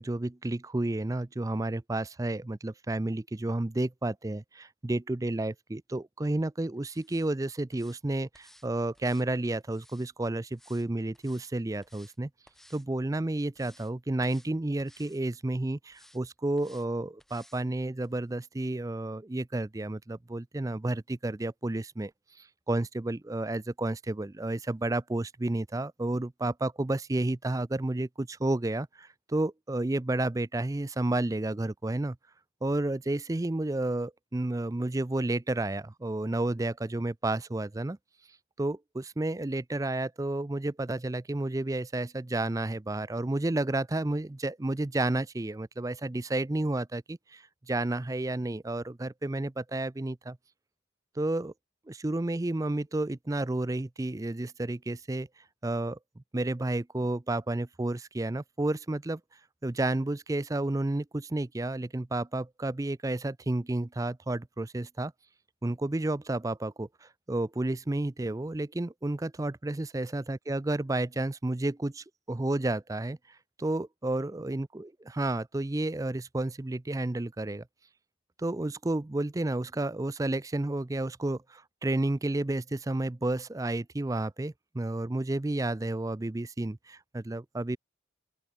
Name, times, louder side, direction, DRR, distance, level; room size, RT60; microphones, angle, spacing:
voice 1, 0.0-12.3 12.7-22.1 22.4-32.2 32.6-38.0 38.6-50.4 51.2-51.5 51.9-55.3 55.6-59.2 59.6-65.1 65.6-73.2 73.6-77.6 78.4-87.8, right 2 dB, 15° right, 0.4 m, -31 dB
sound 1, 6.8-7.3 7.7-8.0 8.3-8.7 8.9-10.1 10.5-10.9 11.1-11.5 11.8-12.2 12.5-12.9 13.3-13.9 14.2-14.5 14.8-15.2 15.9-16.2 16.6-16.9 17.2-17.6 18.0-18.1, left 1 dB, ahead, 3.6 m, -58 dB
open air
head